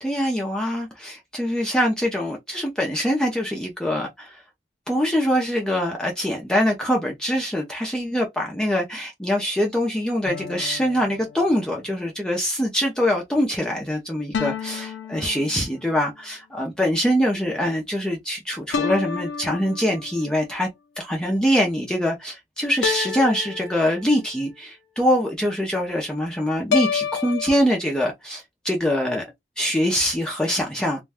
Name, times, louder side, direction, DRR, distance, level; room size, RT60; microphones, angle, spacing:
voice 1, 0.0-4.4 4.9-20.7 21.0-29.2 29.6-31.0, equal, 5° left, 0.5 m, -23 dB
sound 1, 10.3-11.9 14.3-16.0 18.7-20.2 22.8-24.4 26.7-27.6, left 6 dB, 80° left, 0.5 m, -29 dB
2.5 x 2.2 x 3.4 m
head